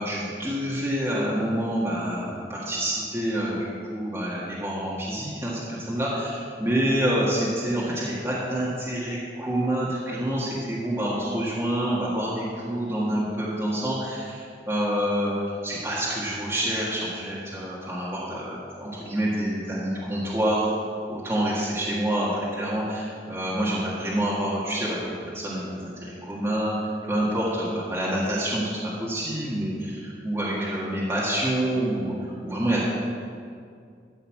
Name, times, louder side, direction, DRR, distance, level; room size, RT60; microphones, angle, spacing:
voice 1, 0.0-15.3 15.6-20.7 21.1-26.8 27.0-32.8, right 1 dB, 15° right, -7 dB, 1.7 m, -27 dB
13.0 x 5.7 x 7.4 m, 2.3 s
head